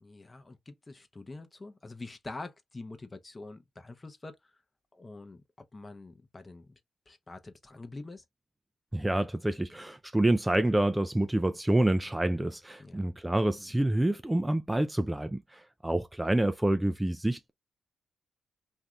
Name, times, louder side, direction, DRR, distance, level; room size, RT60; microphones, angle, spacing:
voice 1, 0.0-4.4 4.9-5.4 5.7-6.8 7.1-8.2 12.8-13.1, left 2 dB, 25° left, 0.7 m, -45 dB
voice 2, 8.9-17.5, right 1 dB, 10° right, 0.3 m, -27 dB
2.7 x 2.4 x 3.2 m
cardioid pair, 75°, 0 cm